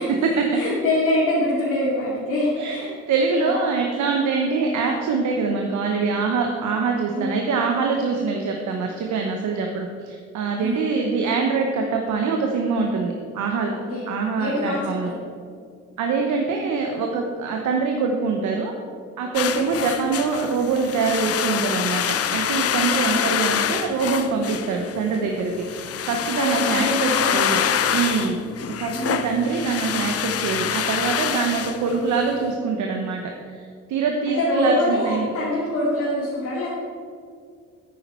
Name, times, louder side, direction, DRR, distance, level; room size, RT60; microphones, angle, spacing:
voice 1, 0.5-2.9 3.3-3.6 7.1-7.3 10.6-10.8 13.7-15.2 19.4-19.6 23.1-23.4 26.4-27.8 28.7-29.2 34.3-36.7, left 1 dB, 75° left, -7 dB, 2.7 m, -25 dB
voice 2, 3.1-13.7 14.1-15.1 16.0-18.7 19.2-27.6 27.9-28.4 28.8-33.2 33.5-35.3, right 4 dB, 75° right, 2 dB, 1.1 m, -24 dB
sound 1, 19.3-32.4, left 9 dB, 50° left, 0.7 m, -26 dB
10.0 x 9.5 x 4.5 m, 2.2 s
supercardioid pair, 55°, 30 cm